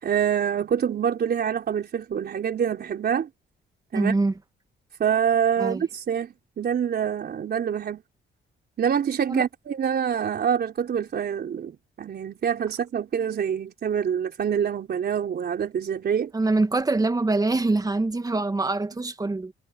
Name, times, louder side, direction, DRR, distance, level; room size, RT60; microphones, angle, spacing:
voice 1, 0.0-3.3 3.9-4.1 5.0-8.0 8.8-16.3, right 8 dB, 55° right, 4.1 m, -26 dB
voice 2, 3.9-4.3 5.6-5.8 9.3-9.4 16.3-19.5, right 2 dB, 20° right, 1.5 m, -24 dB
cardioid pair, 90°, 20 cm